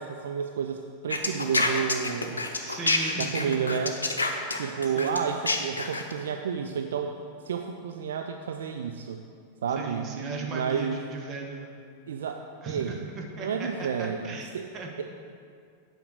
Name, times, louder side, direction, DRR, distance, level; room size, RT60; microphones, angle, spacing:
voice 1, 0.0-2.4 3.2-4.0 4.6-7.1 7.4-9.2 9.6-11.0 12.1-13.1 13.4-14.7, right 7 dB, 65° right, 5 dB, 0.4 m, -31 dB
sound 1, 1.1-6.1, left 2 dB, 75° left, 0.7 m, -27 dB
voice 2, 2.6-3.8 4.3-4.5 4.8-5.2 9.8-11.7 12.6-14.5 14.7-15.0, right 3 dB, 30° right, 0 dB, 1.4 m, -37 dB
8.6 x 5.2 x 6.3 m, 2.2 s
figure-of-eight pair, 90°, 0 cm